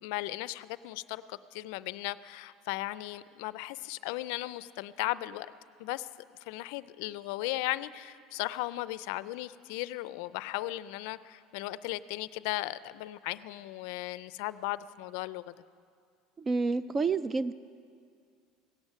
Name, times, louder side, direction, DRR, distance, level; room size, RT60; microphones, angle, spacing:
voice 1, 0.0-5.5 5.8-6.1 6.5-15.5, left 17 dB, 75° left, 17 dB, 0.4 m, -36 dB
voice 2, 16.4-17.5, right 4 dB, 25° right, 16 dB, 0.3 m, -29 dB
17.5 x 8.1 x 8.5 m, 2.2 s
supercardioid pair, 120°, 0 cm